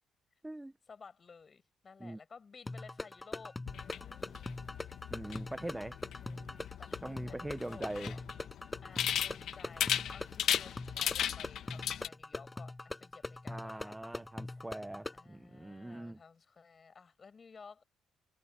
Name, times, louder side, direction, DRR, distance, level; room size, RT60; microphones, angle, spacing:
voice 1, 0.9-3.6 3.9-4.5 6.2-8.2 8.5-14.0 15.1-17.8, left 5 dB, 40° left, 7.7 m, -55 dB
sound 1, 2.7-15.3, left 2 dB, 15° left, 6.7 m, -43 dB
sound 2, 3.7-12.1, left 10 dB, 75° left, 1.4 m, -37 dB
voice 2, 5.1-6.0 7.0-8.1 13.5-16.2, right 1 dB, 10° right, 0.9 m, -42 dB
cardioid pair, 90°, 0 cm